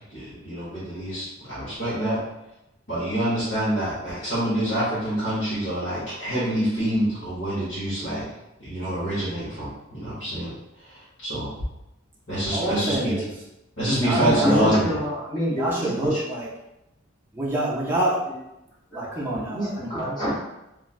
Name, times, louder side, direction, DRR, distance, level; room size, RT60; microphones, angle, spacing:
voice 1, 0.4-2.2 2.9-8.2 8.6-9.7 9.9-10.5 11.2-11.5 12.3-13.1 13.8-14.9, right 1 dB, 60° left, -12 dB, 1.1 m, -26 dB
voice 2, 12.5-13.4 13.9-14.7 15.5-16.5 17.3-18.2 18.9-19.7, right 1 dB, 10° right, -7 dB, 0.4 m, -26 dB
voice 3, 14.0-15.9 19.3-20.3, equal, 20° left, -8 dB, 0.9 m, -27 dB
3.0 x 2.4 x 2.3 m, 0.90 s
head